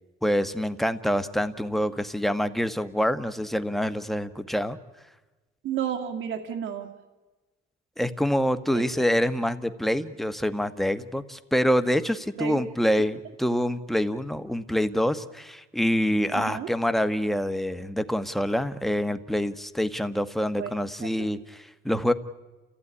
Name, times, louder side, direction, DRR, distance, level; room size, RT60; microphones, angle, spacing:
voice 1, 0.2-4.8 8.0-22.1, equal, ahead, 10 dB, 1.3 m, -26 dB
voice 2, 5.6-6.9 8.7-8.8 12.4-12.6 16.3-16.7 20.6-20.7 21.0-21.1, right 9 dB, 80° right, 6 dB, 2.3 m, -31 dB
29.5 x 15.5 x 9.9 m, 1.2 s
cardioid pair, 90°, 20 cm